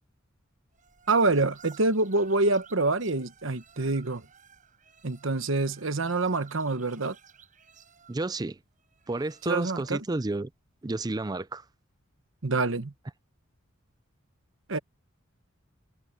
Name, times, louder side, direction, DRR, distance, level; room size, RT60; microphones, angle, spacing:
sound 1, 0.7-10.0, right 7 dB, 40° right, 7.0 m, -56 dB
voice 1, 1.1-4.2 5.0-7.2 9.5-10.0 12.4-12.9 14.7-14.8, right 3 dB, 65° right, 1.2 m, -26 dB
voice 2, 8.1-8.6 9.1-10.5 10.8-11.6, right 2 dB, 20° right, 0.5 m, -31 dB
head